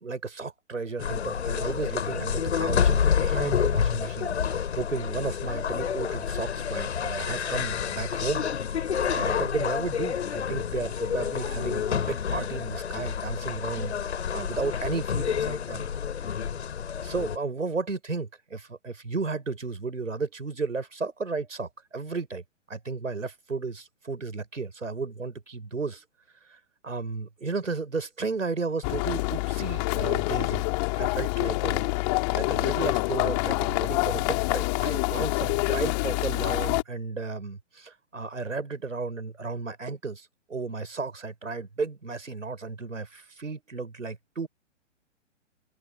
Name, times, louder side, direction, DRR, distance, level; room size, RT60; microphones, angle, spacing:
voice 1, 0.0-4.3 4.8-15.9 16.2-16.3 16.9-26.0 26.5-30.6 31.0-31.9 32.3-44.5, right 4 dB, 80° right, 5.9 m, -33 dB
sound 1, 1.0-17.4, left 7 dB, 60° left, 8.0 m, -28 dB
sound 2, 28.8-36.8, left 27 dB, 35° left, 4.1 m, -26 dB
open air
figure-of-eight pair, 125°, 38 cm